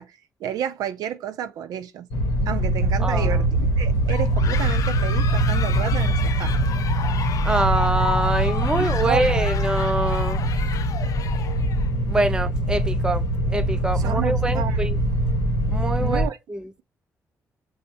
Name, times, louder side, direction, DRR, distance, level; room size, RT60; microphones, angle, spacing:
voice 1, 0.0-2.1 2.5-6.5 8.7-9.6 14.0-15.0 16.0-16.4, right 9 dB, 85° right, 0.4 m, -31 dB
sound 1, 2.1-16.3, right 1 dB, 90° left, 0.8 m, -23 dB
voice 2, 3.0-3.4 7.4-10.4 12.1-13.2 13.5-15.0 15.7-16.7, right 2 dB, 15° right, 0.4 m, -25 dB
sound 2, 4.1-11.9, left 8 dB, 65° left, 0.4 m, -34 dB
5.4 x 2.0 x 2.5 m
cardioid pair, 80°, 6 cm